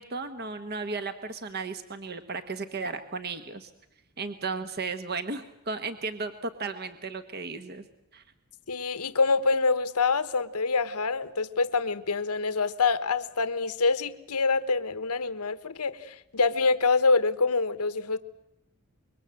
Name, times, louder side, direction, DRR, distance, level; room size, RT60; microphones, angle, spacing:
voice 1, 0.0-3.7 4.2-7.8 8.1-8.2, right 4 dB, 45° right, 9 dB, 1.3 m, -35 dB
voice 2, 8.7-18.2, left 4 dB, 85° left, 13 dB, 1.2 m, -26 dB
26.0 x 23.0 x 7.7 m, 0.90 s
head